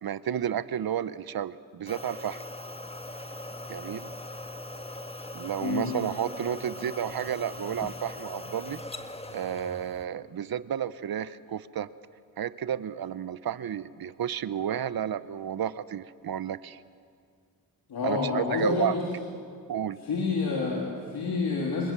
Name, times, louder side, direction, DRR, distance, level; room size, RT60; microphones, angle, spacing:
voice 1, 0.0-2.4 3.7-4.1 5.3-8.8 9.3-11.9 12.4-16.8 18.0-18.9 19.7-20.0, right 9 dB, 75° right, 16 dB, 0.9 m, -32 dB
sound 1, 1.9-10.1, left 1 dB, 15° left, 1.7 m, -40 dB
voice 2, 5.6-6.0 17.9-19.0 20.0-21.9, left 4 dB, 90° left, -3 dB, 3.2 m, -28 dB
27.0 x 20.5 x 7.5 m, 2.2 s
cardioid pair, 45°, 36 cm